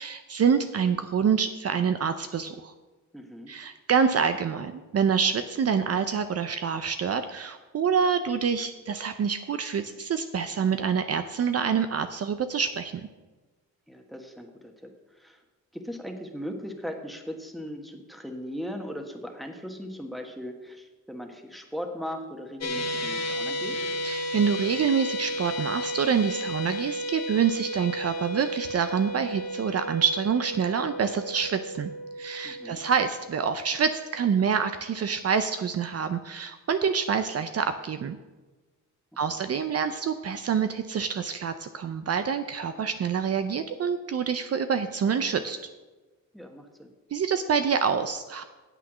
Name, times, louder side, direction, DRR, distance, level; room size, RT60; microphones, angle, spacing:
voice 1, 0.0-2.7 3.5-12.9 24.0-31.9 32.2-38.2 39.2-45.6 47.1-48.4, right 6 dB, 50° right, 9 dB, 0.6 m, -26 dB
voice 2, 3.1-3.5 13.9-14.9 15.1-15.4 15.7-23.8 32.4-32.8 39.3-39.4 46.3-46.9, equal, ahead, 4 dB, 1.4 m, -38 dB
sound 1, 22.6-34.9, equal, 55° left, 1.0 m, -34 dB
9.0 x 8.2 x 6.2 m, 1.2 s
wide cardioid pair, 125°, 32 cm